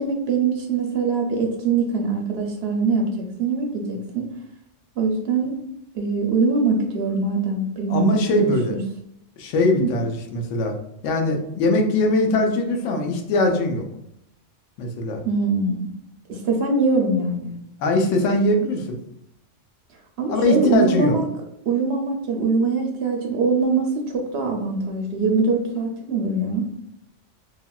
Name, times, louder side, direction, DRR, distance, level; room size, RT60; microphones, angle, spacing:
voice 1, 0.0-3.1 3.4-4.3 5.0-5.6 5.9-8.8 9.8-9.9 15.2-15.8 16.3-17.5 20.2-21.3 21.7-26.7, right 4 dB, 65° right, 1 dB, 0.7 m, -23 dB
voice 2, 7.9-8.8 9.4-10.8 11.0-13.8 14.8-15.2 17.8-18.9 20.3-21.2, left 2 dB, 75° left, 3 dB, 0.9 m, -21 dB
3.5 x 2.3 x 2.2 m, 0.75 s
omnidirectional pair, 1.3 m